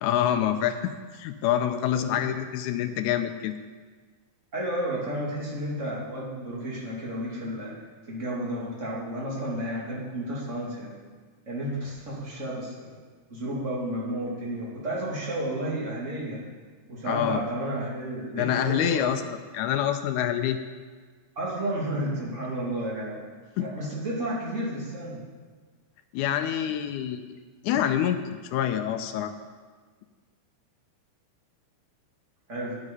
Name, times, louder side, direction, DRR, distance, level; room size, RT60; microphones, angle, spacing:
voice 1, 0.0-3.6 17.1-17.4 18.3-19.2 19.5-20.6 23.6-23.7 26.1-27.2 27.6-29.3, left 10 dB, 80° left, 8 dB, 1.9 m, -26 dB
voice 2, 4.5-7.7 8.1-11.0 11.5-13.0 13.3-16.4 16.9-19.1 21.4-23.2 23.6-25.2 32.5-32.8, right 1 dB, 25° right, -5 dB, 2.5 m, -32 dB
11.0 x 8.1 x 5.4 m, 1.5 s
omnidirectional pair, 3.7 m